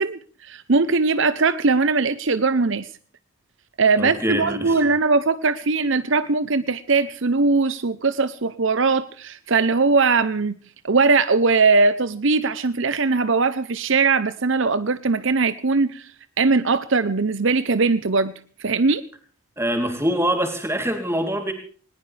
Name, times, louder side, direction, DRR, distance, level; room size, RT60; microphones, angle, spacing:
voice 1, 0.0-2.9 3.8-10.6 10.8-16.1 16.4-18.3 18.6-19.0, right 4 dB, 60° right, 14 dB, 0.8 m, -20 dB
voice 2, 4.0-4.8 19.6-21.5, equal, 10° right, 5 dB, 3.3 m, -24 dB
20.0 x 19.5 x 3.4 m, 0.43 s
head